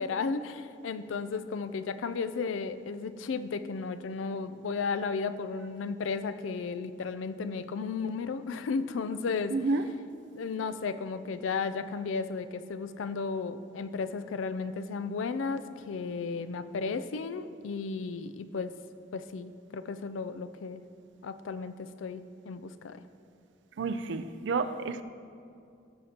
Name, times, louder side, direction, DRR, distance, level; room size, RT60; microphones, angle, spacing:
voice 1, 0.0-9.5 10.3-18.7 19.1-20.8 21.2-23.0, left 4 dB, 80° left, 0.4 m, -34 dB
voice 2, 9.5-9.8 23.8-25.0, right 3 dB, 65° right, 0.4 m, -30 dB
15.5 x 6.4 x 2.9 m
head